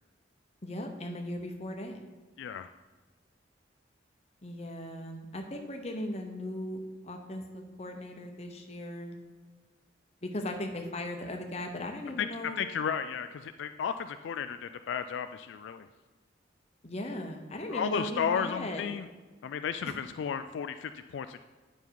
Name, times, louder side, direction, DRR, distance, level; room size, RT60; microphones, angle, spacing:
voice 1, 0.6-2.0 4.4-9.2 10.2-12.6 16.8-18.8 19.8-19.9, left 1 dB, 35° left, 4 dB, 0.9 m, -38 dB
voice 2, 2.4-2.7 12.2-12.3 12.6-15.9 17.7-19.1 19.4-21.4, left 7 dB, 75° left, 10 dB, 0.3 m, -33 dB
9.0 x 5.3 x 4.7 m, 1.3 s
head